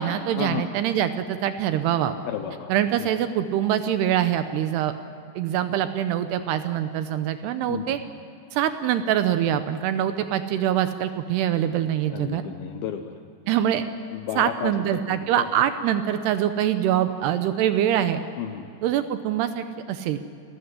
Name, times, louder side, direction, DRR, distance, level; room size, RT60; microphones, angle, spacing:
voice 1, 0.0-2.2 2.7-4.9 5.4-8.0 8.5-12.4 13.5-13.8 14.4-18.2 18.8-20.2, right 10 dB, 75° right, 10 dB, 2.6 m, -24 dB
voice 2, 2.3-2.7 7.7-8.0 12.1-13.2 14.1-15.0 15.4-15.5 18.4-18.7, left 10 dB, 75° left, 7 dB, 2.3 m, -32 dB
29.0 x 14.0 x 9.7 m, 2.5 s
omnidirectional pair, 5.3 m